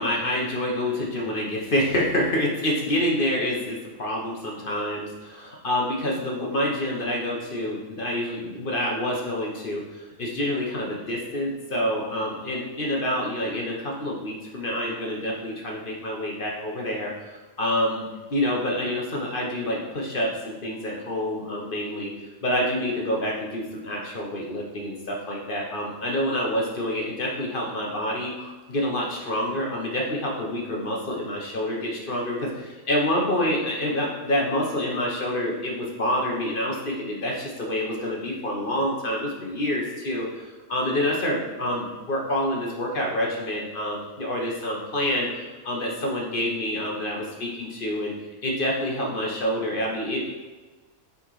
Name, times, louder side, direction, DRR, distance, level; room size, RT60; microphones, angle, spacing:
voice 1, 0.0-22.1 22.4-48.1 48.4-50.3, left 1 dB, 40° left, -2 dB, 1.1 m, -27 dB
6.4 x 4.0 x 4.7 m, 1.3 s
omnidirectional pair, 1.5 m